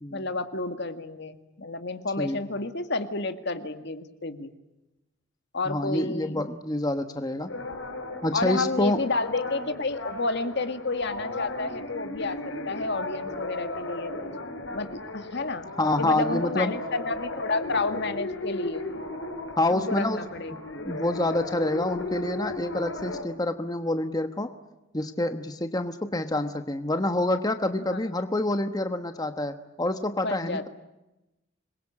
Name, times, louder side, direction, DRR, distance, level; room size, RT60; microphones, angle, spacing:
voice 1, 0.1-4.5 5.5-6.5 8.3-14.1 14.7-18.9 19.7-20.5 27.9-28.0 30.2-30.6, left 3 dB, 60° left, 9 dB, 2.0 m, -30 dB
voice 2, 5.7-7.5 8.2-9.0 14.2-14.4 15.3-16.7 19.6-20.2 20.8-24.5 24.9-30.7, left 1 dB, 20° left, 8 dB, 1.2 m, -27 dB
sound 1, 7.5-23.2, left 2 dB, 75° left, 4.8 m, -36 dB
27.0 x 22.5 x 8.6 m, 0.97 s
head